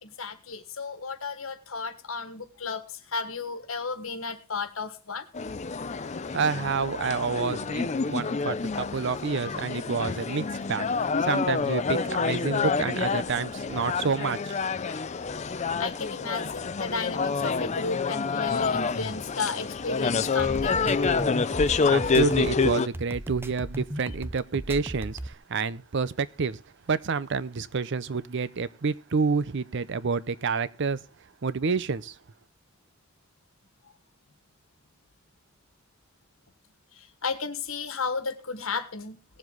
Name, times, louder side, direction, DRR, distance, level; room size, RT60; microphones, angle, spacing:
voice 1, 0.0-5.2 15.8-20.8 36.9-39.4, left 4 dB, 80° left, 1.5 m, -33 dB
sound 1, 5.3-22.9, left 4 dB, 35° left, 0.5 m, -28 dB
voice 2, 6.3-14.6 21.9-26.6 26.9-31.0 31.4-32.1, right 5 dB, 60° right, 0.6 m, -29 dB
sound 2, 20.2-25.3, right 1 dB, 10° right, 0.6 m, -36 dB
18.5 x 7.5 x 3.9 m
head